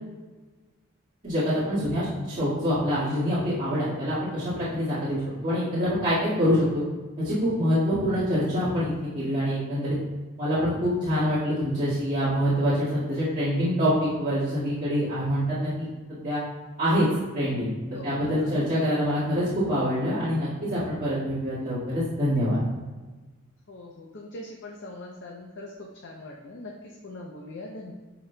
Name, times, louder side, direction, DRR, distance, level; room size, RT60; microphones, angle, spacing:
voice 1, 1.2-6.8 7.2-10.0 10.4-16.4 16.8-17.1 17.3-22.6, equal, 35° right, -13 dB, 1.8 m, -25 dB
voice 2, 23.7-27.9, left 2 dB, 50° left, -1 dB, 0.6 m, -41 dB
11.0 x 4.1 x 2.2 m, 1.3 s
head